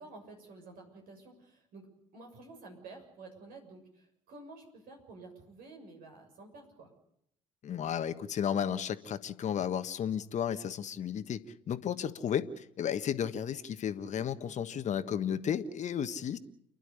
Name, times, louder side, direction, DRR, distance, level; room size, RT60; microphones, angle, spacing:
voice 1, 0.0-6.9, right 3 dB, 65° right, 3 dB, 6.9 m, -51 dB
voice 2, 7.6-16.4, left 8 dB, 45° left, 10 dB, 1.5 m, -33 dB
29.5 x 11.5 x 10.0 m, 0.74 s
hypercardioid pair, 55°, 16 cm